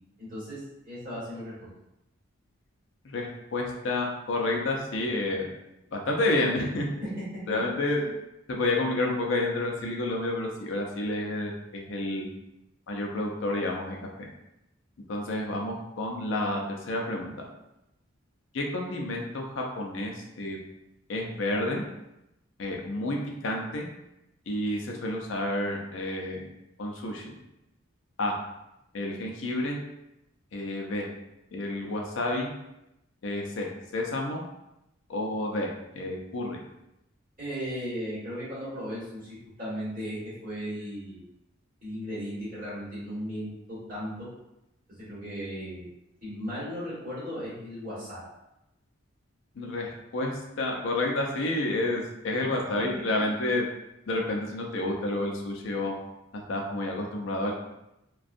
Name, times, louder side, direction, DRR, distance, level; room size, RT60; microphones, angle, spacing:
voice 1, 0.2-0.6 0.8-1.5 7.0-7.1 7.9-8.1 37.4-40.2 40.4-41.2 41.8-44.3 45.0-45.8 46.2-48.2 53.2-53.3, equal, 40° right, -10 dB, 1.4 m, -36 dB
voice 2, 3.0-5.5 5.9-6.9 7.5-8.1 8.5-12.3 12.9-14.3 15.1-17.4 18.5-20.6 21.1-21.8 22.6-23.9 24.5-26.5 26.8-27.3 28.2-28.4 28.9-29.8 30.5-31.1 31.5-32.5 33.2-34.4 35.1-35.7 35.9-36.6 49.6-53.7 54.1-55.9 56.3-57.5, left 2 dB, 60° left, 0 dB, 0.4 m, -30 dB
2.5 x 2.2 x 2.5 m, 0.88 s
head